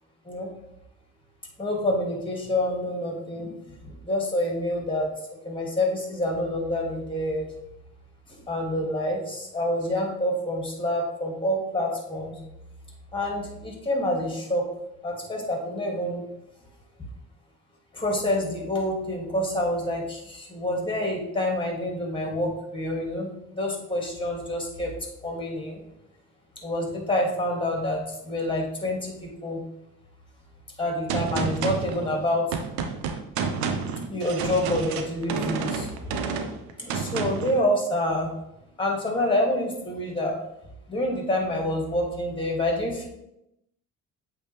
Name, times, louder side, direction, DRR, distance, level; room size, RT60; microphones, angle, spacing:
voice 1, 1.6-3.6 3.8-5.1 5.4-7.5 8.3-12.3 13.1-14.7 15.0-16.2 17.9-24.9 25.2-25.8 26.6-29.6 30.8-32.6 34.1-35.9 36.8-38.3 38.8-40.4 40.9-43.1, left 1 dB, 15° left, 0 dB, 2.3 m, -27 dB
Gunshot gunfire, 31.1-37.6, right 5 dB, 85° right, 0.7 m, -30 dB
8.1 x 3.6 x 3.4 m, 0.84 s
supercardioid pair, 70°, 36 cm